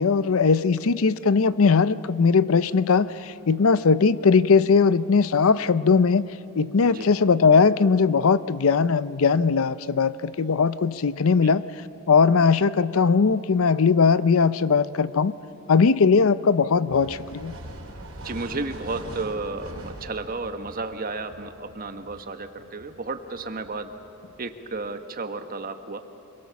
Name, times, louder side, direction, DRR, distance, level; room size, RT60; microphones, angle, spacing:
voice 1, 0.0-6.3 6.6-11.6 12.1-15.3 15.7-17.5, left 5 dB, 70° left, 16 dB, 0.5 m, -19 dB
sound 1, 16.9-24.9, right 1 dB, 80° right, 4.4 m, -43 dB
voice 2, 18.2-23.9 24.4-26.0, right 3 dB, 40° right, 8 dB, 1.2 m, -33 dB
27.0 x 22.0 x 7.0 m, 2.9 s
head